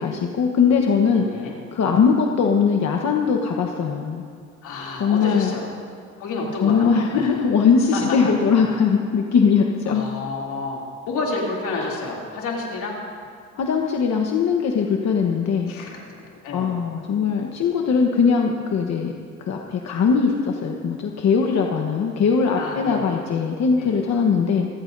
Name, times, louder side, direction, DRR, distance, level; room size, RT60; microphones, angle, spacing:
voice 1, 0.0-1.3 1.7-4.2 5.0-5.5 6.6-10.0 11.7-12.0 13.6-15.7 16.5-19.1 19.4-24.7, left 6 dB, 65° left, 1 dB, 1.2 m, -20 dB
voice 2, 1.1-1.6 4.6-5.7 6.2-7.4 7.9-8.3 8.7-8.8 9.9-13.0 15.7-16.8 22.6-23.2 23.8-24.0, left 3 dB, 85° left, -2 dB, 3.0 m, -30 dB
27.5 x 14.5 x 2.7 m, 2.2 s
cardioid pair, 90°, 30 cm